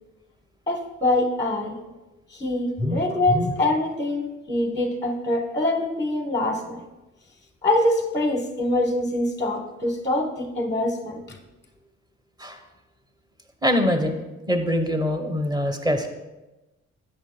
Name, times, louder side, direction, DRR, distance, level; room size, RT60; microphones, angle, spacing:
voice 1, 0.7-1.8 2.3-6.9 7.6-11.4, left 1 dB, 10° left, 3 dB, 0.9 m, -24 dB
voice 2, 13.6-14.2 14.5-16.1, left 1 dB, 15° right, 6 dB, 1.1 m, -23 dB
12.5 x 8.7 x 2.2 m, 1.1 s
cardioid pair, 90°, 30 cm